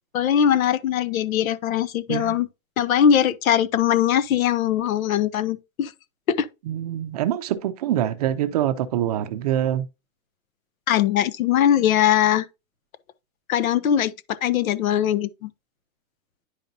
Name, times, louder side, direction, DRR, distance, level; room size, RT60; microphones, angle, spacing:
voice 1, 0.1-2.5 2.8-5.9 6.3-6.5 10.9-12.4 13.5-15.5, left 9 dB, 85° left, 1.1 m, -21 dB
voice 2, 6.7-9.9, right 11 dB, 30° right, 0.5 m, -25 dB
10.0 x 5.3 x 2.7 m
supercardioid pair, 170°, 40 cm